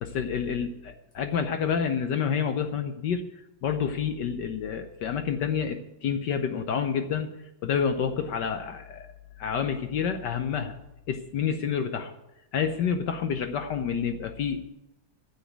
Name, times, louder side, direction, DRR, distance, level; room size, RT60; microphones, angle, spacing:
voice 1, 0.0-7.3 7.6-9.1 9.4-10.8 11.1-12.1 12.5-14.7, left 7 dB, 65° left, 7 dB, 1.3 m, -28 dB
9.9 x 7.2 x 9.3 m, 0.89 s
omnidirectional pair, 2.1 m